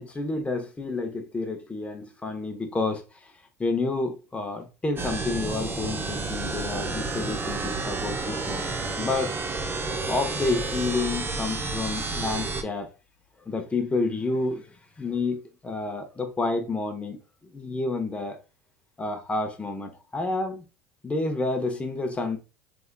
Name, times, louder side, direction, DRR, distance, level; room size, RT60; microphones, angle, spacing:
voice 1, 0.0-3.0 3.6-8.7 9.0-9.3 10.1-12.9 13.5-14.6 15.0-17.2 17.5-18.4 19.0-20.6 21.0-22.4, left 3 dB, 15° left, 0.9 m, -29 dB
sound 1, 5.0-12.6, right 3 dB, 25° right, 0.7 m, -30 dB
3.4 x 3.4 x 2.2 m
hypercardioid pair, 80°, 9 cm